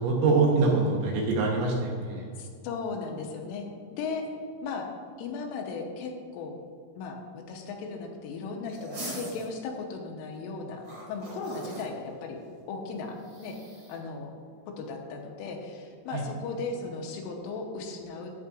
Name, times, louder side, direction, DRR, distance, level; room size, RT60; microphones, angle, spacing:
voice 1, 0.0-2.3 16.1-16.2, right 3 dB, 75° right, -1 dB, 3.0 m, -24 dB
voice 2, 2.4-3.7 4.0-4.3 4.6-4.9 5.2-6.6 7.0-12.4 12.7-13.6 13.9-14.3 14.8-18.3, left 4 dB, 85° left, 2 dB, 3.2 m, -36 dB
sound 1, 8.7-9.5 10.8-11.9 13.2-14.0, right 1 dB, 50° right, 1.6 m, -40 dB
11.0 x 8.5 x 2.5 m, 2.2 s
omnidirectional pair, 6.0 m